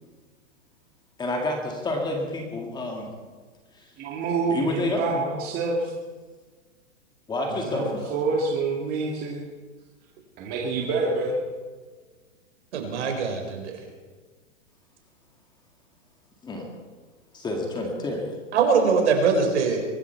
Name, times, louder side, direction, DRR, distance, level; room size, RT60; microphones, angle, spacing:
voice 1, 1.2-3.1 3.7-3.9 4.5-5.2 7.3-8.1 16.4-16.7 17.3-18.4, left 2 dB, 10° left, 1 dB, 2.0 m, -29 dB
voice 2, 4.0-5.9 7.5-9.4 10.4-11.4, right 3 dB, 25° right, -1 dB, 1.9 m, -27 dB
voice 3, 12.7-13.8 18.5-19.8, right 5 dB, 65° right, 3 dB, 4.6 m, -22 dB
23.0 x 13.0 x 4.5 m, 1.4 s
hypercardioid pair, 150°, 38 cm